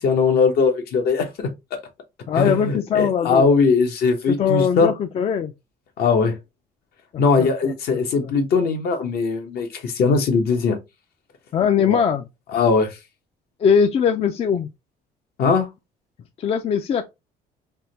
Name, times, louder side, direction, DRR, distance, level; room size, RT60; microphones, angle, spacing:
voice 1, 0.0-1.5 2.3-4.9 6.0-6.4 7.2-10.8 11.9-12.0 12.5-13.0 15.4-15.7, left 4 dB, 65° left, 0.9 m, -20 dB
voice 2, 2.3-3.5 4.3-5.5 7.1-7.7 11.5-12.2 13.6-14.7 16.4-17.0, left 7 dB, 35° left, 0.4 m, -21 dB
3.5 x 2.1 x 2.8 m
cardioid pair, 110°, 17 cm